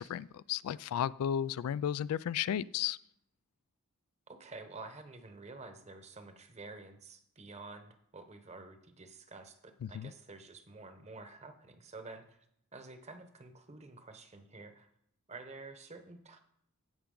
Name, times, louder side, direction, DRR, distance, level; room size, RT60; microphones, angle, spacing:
voice 1, 0.0-3.0 9.8-10.1, left 9 dB, 85° left, 18 dB, 0.3 m, -34 dB
voice 2, 4.3-12.4 12.7-14.9 15.3-16.4, right 3 dB, 30° right, 8 dB, 0.9 m, -50 dB
15.5 x 5.8 x 3.8 m, 0.71 s
head